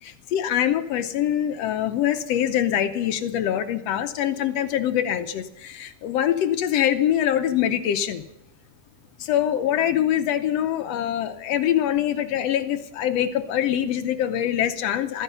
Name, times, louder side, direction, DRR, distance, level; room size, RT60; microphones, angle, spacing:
voice 1, 0.0-8.2 9.2-15.2, left 10 dB, 70° left, 8 dB, 1.6 m, -24 dB
14.5 x 14.0 x 5.6 m, 0.83 s
omnidirectional pair, 3.6 m